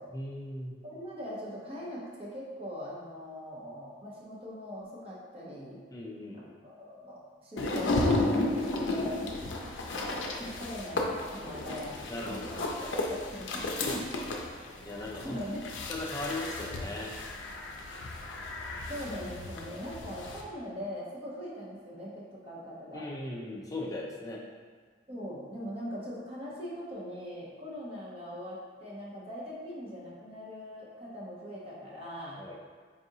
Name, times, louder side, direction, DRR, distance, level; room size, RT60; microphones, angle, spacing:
voice 1, 0.1-0.7 5.9-6.5 8.9-9.9 12.1-12.9 14.9-15.4 15.9-17.2 22.9-24.4 32.4-32.6, left 2 dB, 20° left, -2 dB, 0.4 m, -39 dB
voice 2, 0.8-5.8 6.6-9.3 10.4-12.0 12.2-12.6 12.9-14.1 15.2-15.7 18.9-23.0 25.1-32.4, equal, 30° right, -6 dB, 0.8 m, -41 dB
sound 1, 7.6-20.4, left 2 dB, 85° left, 0.5 m, -34 dB
4.7 x 2.5 x 2.7 m, 1.5 s
head